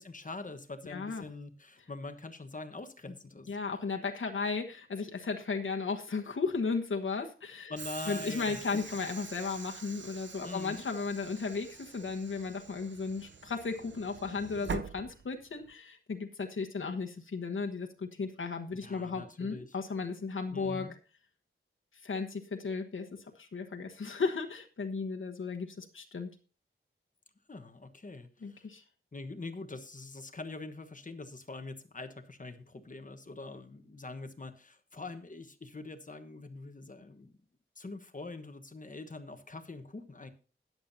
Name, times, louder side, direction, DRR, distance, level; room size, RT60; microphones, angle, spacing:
voice 1, 0.0-3.5 7.7-8.6 10.4-10.8 18.7-19.7 20.5-20.9 27.5-28.7 29.1-37.3 37.8-40.3, left 3 dB, 40° left, 7 dB, 1.3 m, -44 dB
voice 2, 0.9-1.2 3.5-7.7 8.1-20.9 22.0-26.3 28.4-28.8, left 4 dB, 75° left, 3 dB, 1.2 m, -35 dB
Train / Sliding door, 7.8-15.7, right 6 dB, 60° right, 0.7 m, -45 dB
20.0 x 7.3 x 2.7 m, 0.36 s
wide cardioid pair, 95°, 21 cm